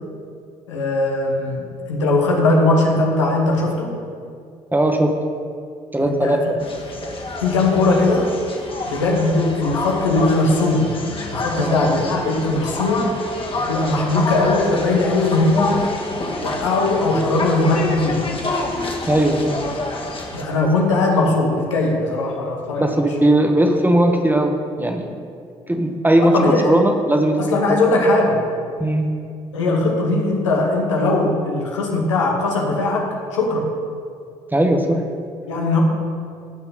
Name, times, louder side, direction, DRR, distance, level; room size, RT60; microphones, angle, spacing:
voice 1, 0.7-3.9 6.1-6.4 7.4-8.3 8.9-10.9 11.2-13.2 13.7-15.9 16.4-18.3 20.3-22.9 26.2-26.7 27.4-28.4 29.5-33.7 35.5-35.8, left 2 dB, 90° left, 0 dB, 1.3 m, -19 dB
voice 2, 4.7-5.2 5.9-6.4 11.6-11.8 19.1-19.6 22.8-25.2 25.7-27.6 28.8-29.1 34.5-35.0, right 1 dB, 10° right, 4 dB, 1.4 m, -18 dB
sound 1, 6.6-20.4, left 2 dB, 35° left, 1.9 m, -28 dB
16.0 x 5.8 x 3.9 m, 2.3 s
hypercardioid pair, 50°, 15 cm